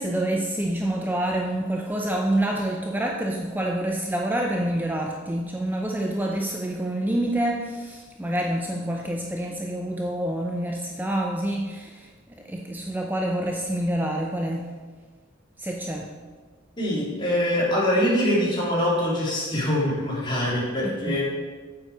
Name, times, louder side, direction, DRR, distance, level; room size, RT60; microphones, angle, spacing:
voice 1, 0.0-14.7 15.6-16.1 20.8-21.2, right 1 dB, 10° right, 1 dB, 0.6 m, -27 dB
voice 2, 16.8-21.2, equal, 25° left, -6 dB, 3.3 m, -24 dB
8.9 x 7.8 x 4.9 m, 1.4 s
head